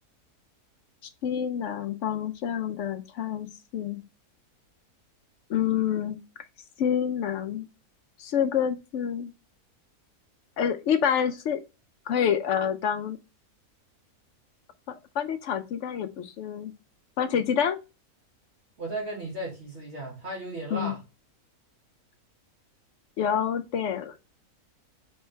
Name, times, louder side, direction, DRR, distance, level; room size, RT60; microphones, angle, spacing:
voice 1, 1.2-3.5 3.7-4.0 5.5-6.2 6.8-7.7 8.2-9.3 10.6-11.6 12.1-13.2 15.2-16.7 17.2-17.8 20.7-20.9 23.2-24.2, left 8 dB, 65° left, 0.7 m, -27 dB
voice 2, 18.8-21.0, right 1 dB, 50° right, 1.8 m, -35 dB
4.4 x 3.7 x 3.1 m
omnidirectional pair, 1.6 m